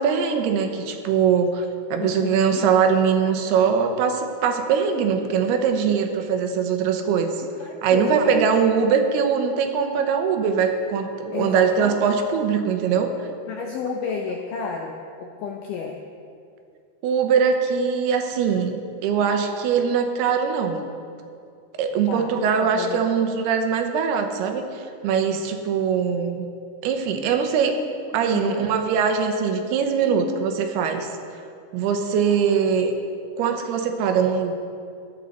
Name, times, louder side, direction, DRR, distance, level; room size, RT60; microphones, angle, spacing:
voice 1, 0.0-7.5 7.8-13.1 17.0-20.9 21.8-26.5 26.8-27.7 28.1-31.1 31.7-32.9 33.4-34.5, right 6 dB, 85° right, 5 dB, 2.9 m, -22 dB
voice 2, 2.0-2.7 7.6-8.4 11.3-12.1 13.5-16.0 22.1-22.4 22.7-23.0 28.1-28.7 32.5-32.6, left 6 dB, 80° left, 1 dB, 1.9 m, -31 dB
15.0 x 11.0 x 4.1 m, 2.4 s
omnidirectional pair, 4.6 m